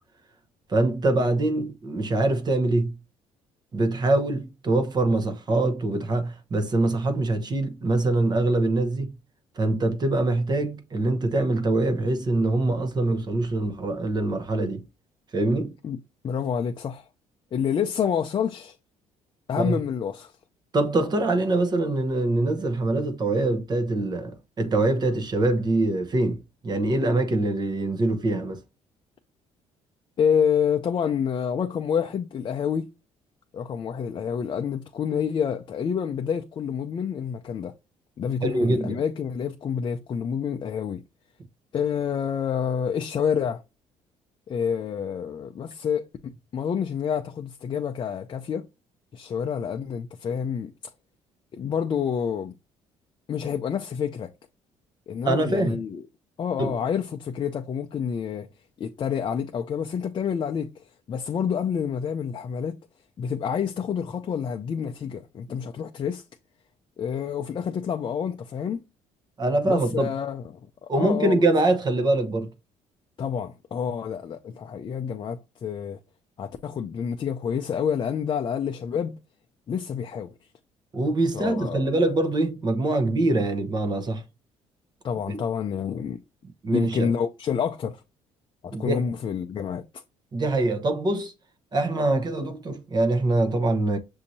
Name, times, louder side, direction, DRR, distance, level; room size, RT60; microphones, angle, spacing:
voice 1, 0.7-3.0 3.7-9.1 9.6-14.8 15.3-15.7 19.6-19.8 20.7-28.6 38.4-39.0 55.2-55.8 56.6-56.8 69.4-70.1 70.9-72.5 80.9-84.2 85.3-85.4 86.6-87.1 88.7-89.1 90.3-91.3 91.7-94.0, right 2 dB, 35° right, 0.9 m, -24 dB
voice 2, 16.2-17.1 17.5-18.8 19.5-20.3 30.2-32.9 33.5-37.7 38.2-41.0 41.7-43.6 44.5-48.7 49.1-50.7 51.5-52.5 53.3-54.3 55.1-56.0 56.4-58.5 58.8-62.8 63.2-66.2 67.0-68.8 69.6-71.5 73.2-76.0 76.4-79.2 79.7-80.3 81.3-81.9 85.0-86.2 86.7-88.0 88.6-89.8, left 7 dB, 40° left, 0.5 m, -28 dB
6.3 x 2.7 x 2.6 m
cardioid pair, 90°, 12 cm